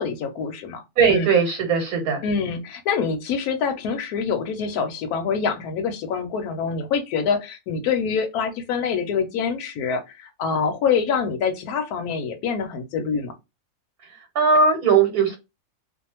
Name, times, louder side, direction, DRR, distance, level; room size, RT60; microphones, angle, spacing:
voice 1, 0.0-0.8 1.1-1.2 2.2-13.3, left 6 dB, 85° left, 6 dB, 1.1 m, -25 dB
voice 2, 1.0-2.2 14.0-15.4, right 5 dB, 85° right, 4 dB, 1.3 m, -19 dB
2.6 x 2.4 x 2.8 m, 0.24 s
omnidirectional pair, 1.6 m